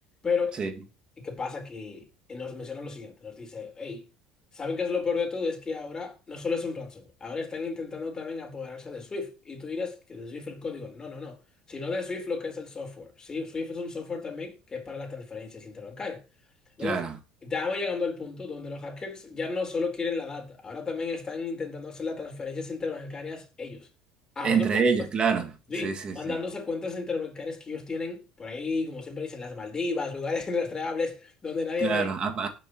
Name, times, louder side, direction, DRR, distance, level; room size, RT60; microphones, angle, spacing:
voice 1, 0.2-0.6 1.2-4.0 4.5-11.4 11.7-16.2 16.8-17.0 17.4-23.9 24.4-25.1 25.7-32.1, left 4 dB, 25° left, 4.3 m, -33 dB
voice 2, 24.4-25.5 25.8-26.4 31.8-32.5, right 5 dB, 40° right, 2.3 m, -26 dB
19.5 x 6.7 x 3.1 m
hypercardioid pair, 75°, 3 cm